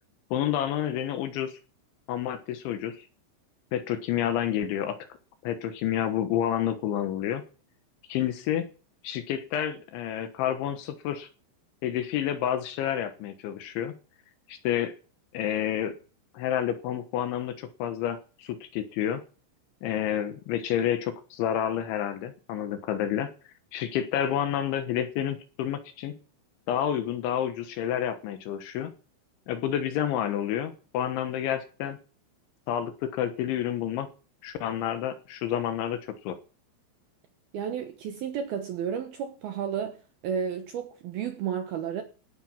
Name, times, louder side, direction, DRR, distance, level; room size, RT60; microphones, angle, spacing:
voice 1, 0.3-1.6 2.1-3.0 3.7-5.0 5.4-7.4 8.1-8.7 9.0-11.3 11.8-13.9 14.5-14.9 15.3-15.9 16.3-19.2 19.8-23.3 23.7-26.2 26.7-28.9 29.5-32.0 32.7-34.1 34.4-36.4, left 10 dB, 75° left, 3.4 m, -29 dB
voice 2, 37.5-40.0 40.2-42.0, right 8 dB, 70° right, 2.5 m, -32 dB
17.0 x 9.1 x 5.9 m
omnidirectional pair, 5.9 m